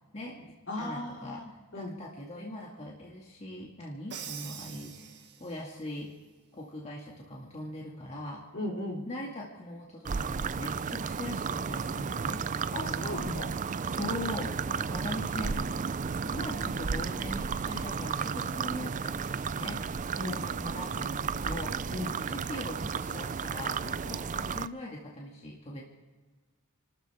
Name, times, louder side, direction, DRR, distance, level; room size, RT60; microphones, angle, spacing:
voice 1, 0.1-6.1 6.5-8.5 9.1-13.2 13.5-15.7 15.9-21.9 22.2-25.8, left 1 dB, 30° left, -2 dB, 2.0 m, -41 dB
voice 2, 0.7-1.9 8.5-9.0 12.7-13.5 20.2-20.4 21.9-22.1, left 1 dB, 55° left, -2 dB, 4.1 m, -36 dB
Crash cymbal, 4.1-5.8, right 8 dB, 50° right, 1.6 m, -44 dB
sound 1, 10.1-24.7, right 5 dB, 35° right, 0.4 m, -33 dB
29.5 x 13.5 x 3.5 m, 1.3 s
head